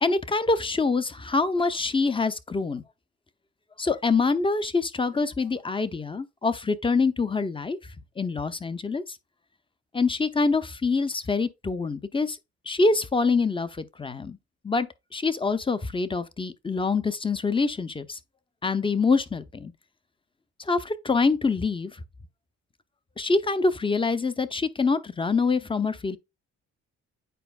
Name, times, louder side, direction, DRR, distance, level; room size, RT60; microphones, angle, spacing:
voice 1, 0.0-2.8 3.8-7.8 8.2-9.0 9.9-12.4 12.7-14.4 14.6-14.9 15.1-18.2 18.6-19.7 20.6-21.9 23.2-26.2, left 4 dB, 15° left, 0.5 m, -25 dB
9.1 x 4.4 x 2.4 m
cardioid pair, 90°, 30 cm